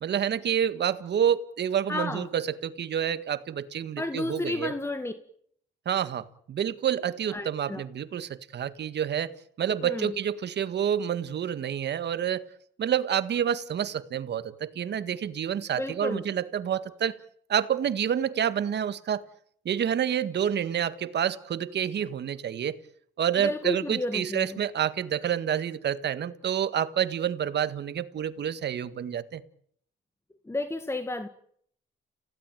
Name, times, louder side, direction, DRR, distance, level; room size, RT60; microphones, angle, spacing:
voice 1, 0.0-4.7 5.9-9.3 9.6-12.4 12.8-17.1 17.5-19.2 19.7-22.8 23.2-29.4, right 9 dB, 60° right, 13 dB, 1.7 m, -28 dB
voice 2, 1.9-2.3 4.0-5.1 7.3-7.8 9.8-10.1 15.7-16.2 23.4-24.6 30.5-31.3, left 2 dB, 15° left, 9 dB, 1.8 m, -32 dB
29.5 x 16.5 x 9.2 m, 0.67 s
cardioid pair, 90°, 20 cm